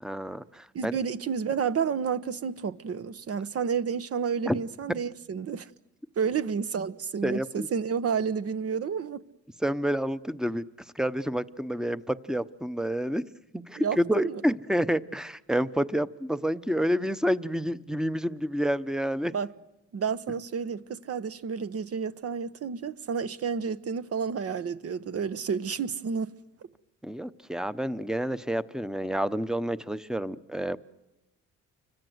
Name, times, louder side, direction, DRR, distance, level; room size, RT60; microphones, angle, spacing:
voice 1, 0.0-1.0 4.5-4.6 7.2-7.7 9.6-10.6 10.9-13.3 13.5-19.3 27.0-30.8, equal, ahead, 0.9 m, -29 dB
voice 2, 0.7-5.7 6.2-9.2 13.8-14.4 19.3-19.5 19.9-26.3, right 6 dB, 50° right, 1.1 m, -30 dB
29.5 x 24.5 x 8.0 m
cardioid pair, 90°, 30 cm